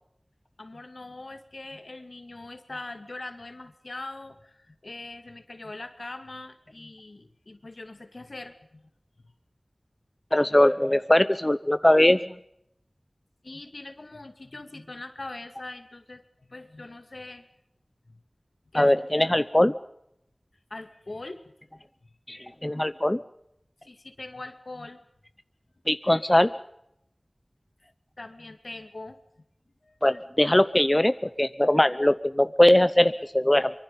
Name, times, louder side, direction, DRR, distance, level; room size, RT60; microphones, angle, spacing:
voice 1, 0.6-8.9 13.4-17.5 18.0-18.2 18.7-18.9 20.7-21.4 23.8-25.0 28.2-29.2 29.8-30.0, left 2 dB, 75° left, 8 dB, 2.4 m, -42 dB
voice 2, 10.3-12.2 18.7-19.7 22.3-23.2 25.9-26.5 30.0-33.7, left 1 dB, 25° left, 12 dB, 0.8 m, -21 dB
24.5 x 23.5 x 5.5 m, 0.75 s
wide cardioid pair, 45°, 0 cm